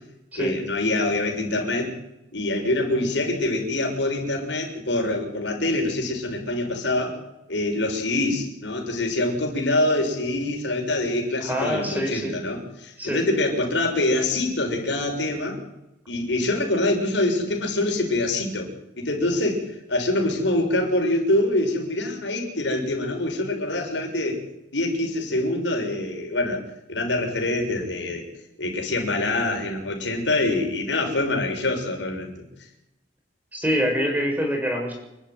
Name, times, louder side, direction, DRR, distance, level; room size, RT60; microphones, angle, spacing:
voice 1, 0.3-1.9 2.3-7.2 7.5-15.6 16.1-18.7 19.0-24.4 24.7-26.6 26.9-28.3 28.6-32.4, left 2 dB, 85° left, 1 dB, 6.6 m, -25 dB
voice 2, 11.4-12.3 13.0-13.2 33.5-34.9, equal, 10° right, 2 dB, 6.9 m, -25 dB
29.0 x 12.0 x 9.6 m, 0.93 s
head